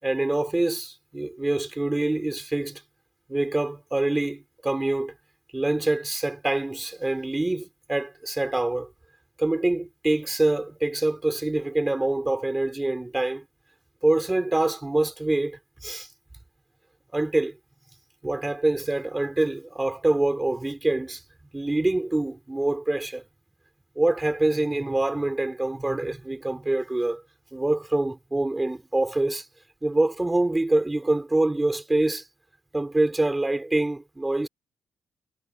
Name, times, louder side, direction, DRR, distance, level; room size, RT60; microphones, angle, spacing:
voice 1, 0.0-2.8 3.3-5.1 5.5-8.9 9.4-13.4 14.0-16.1 17.1-17.6 18.2-21.2 21.5-23.2 24.0-27.2 27.5-29.5 29.8-32.2 32.7-34.5, right 2 dB, 15° right, 5.6 m, -25 dB
cardioid pair, 90°, 0 cm